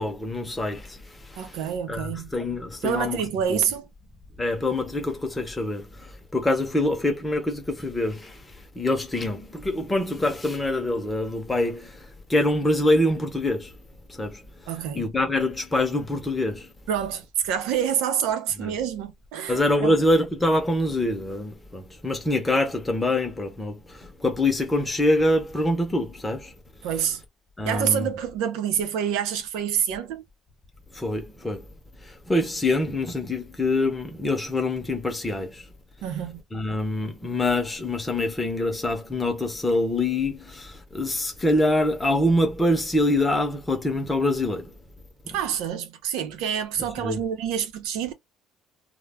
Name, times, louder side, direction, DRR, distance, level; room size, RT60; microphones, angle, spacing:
voice 1, 0.0-1.6 1.9-3.6 4.4-8.5 8.7-13.7 14.1-14.4 14.9-16.7 18.6-18.7 19.5-26.5 27.6-28.1 30.9-31.6 32.0-35.7 36.5-44.7 45.2-45.4 47.0-47.2, left 1 dB, 10° left, 0.7 m, -25 dB
voice 2, 1.4-2.3 2.8-3.9 14.7-15.0 16.9-20.0 26.8-27.2 27.6-30.2 36.0-36.4 45.3-48.1, right 8 dB, 85° right, 0.6 m, -27 dB
2.2 x 2.1 x 3.4 m
cardioid pair, 175°, 0 cm